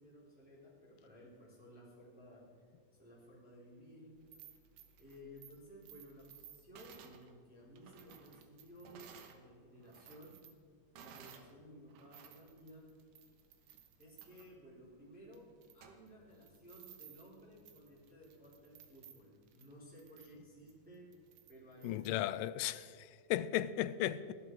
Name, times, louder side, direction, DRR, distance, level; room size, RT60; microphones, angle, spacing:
voice 1, 0.0-2.4 3.0-4.1 5.0-10.3 10.9-12.9 14.0-15.5 15.7-21.1 21.5-22.3, equal, 5° right, 3.7 m, -56 dB
sound 1, 4.2-9.4 9.8-11.5 11.9-22.1, right 8 dB, 75° right, 2.6 m, -59 dB
voice 2, 21.8-24.3, left 13 dB, 80° left, 2.1 m, -36 dB
18.0 x 12.0 x 4.7 m
omnidirectional pair, 3.9 m